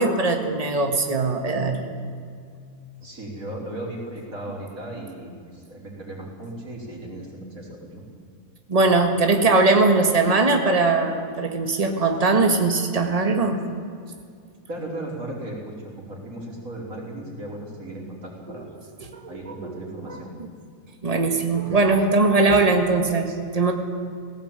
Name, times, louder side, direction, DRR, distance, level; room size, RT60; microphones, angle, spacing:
voice 1, 0.0-1.9 8.7-13.6 19.0-20.5 21.0-23.7, right 3 dB, 25° right, 4 dB, 1.9 m, -21 dB
voice 2, 3.0-7.3 7.5-8.0 14.7-18.6 19.3-20.3, right 1 dB, 75° right, -3 dB, 5.1 m, -36 dB
18.0 x 17.0 x 9.0 m, 2.2 s
omnidirectional pair, 1.5 m